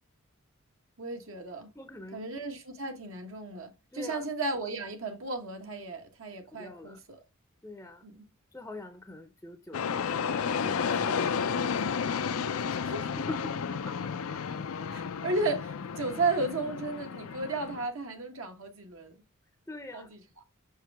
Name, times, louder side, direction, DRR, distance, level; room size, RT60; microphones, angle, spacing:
voice 1, 1.0-1.7 2.1-7.2 8.0-8.2 12.8-13.1 14.9-19.1 19.9-20.2, right 3 dB, 70° right, 1.3 m, -34 dB
voice 2, 1.8-2.3 3.9-4.2 6.5-7.0 7.6-8.0 8.5-12.1 13.2-14.1 19.7-20.1, left 2 dB, 10° left, 0.6 m, -44 dB
sound 1, 9.7-17.9, left 6 dB, 85° left, 0.5 m, -32 dB
5.8 x 4.7 x 3.4 m
head